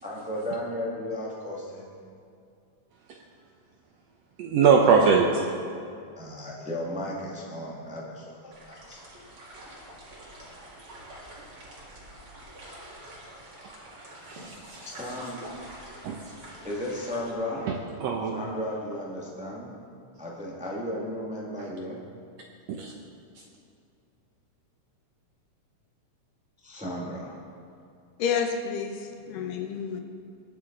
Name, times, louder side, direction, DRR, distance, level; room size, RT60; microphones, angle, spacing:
voice 1, 0.0-1.9 6.2-9.0 14.8-15.4 16.6-17.7 18.3-19.7 20.2-22.0 26.6-27.4, left 1 dB, 5° right, -4 dB, 0.9 m, -34 dB
voice 2, 4.4-5.5 14.3-14.9 16.0-16.2 17.6-18.4 22.7-22.9, right 5 dB, 75° right, 1 dB, 1.5 m, -22 dB
sound 1, 8.5-17.3, right 1 dB, 45° right, 2.7 m, -46 dB
voice 3, 28.2-30.0, left 6 dB, 85° left, 5 dB, 2.6 m, -29 dB
20.0 x 7.3 x 3.9 m, 2.5 s
omnidirectional pair, 3.7 m